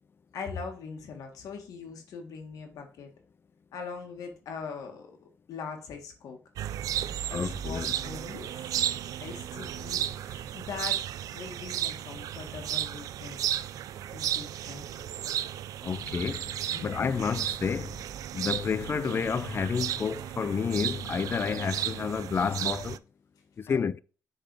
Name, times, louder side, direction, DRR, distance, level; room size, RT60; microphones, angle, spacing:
voice 1, 0.3-3.1 3.7-5.1 5.5-6.4 7.1-8.5 9.2-11.0 11.3-13.4 14.1-14.8 16.7-17.2 18.4-18.5 23.7-23.8, left 5 dB, 85° left, 1.6 m, -41 dB
sound 1, 6.6-23.0, right 11 dB, 85° right, 0.3 m, -34 dB
voice 2, 7.3-7.9 15.8-16.4 16.8-18.0 18.3-23.0 23.7-24.0, left 6 dB, 40° left, 0.4 m, -30 dB
6.7 x 4.0 x 4.7 m
cardioid pair, 95°, 6 cm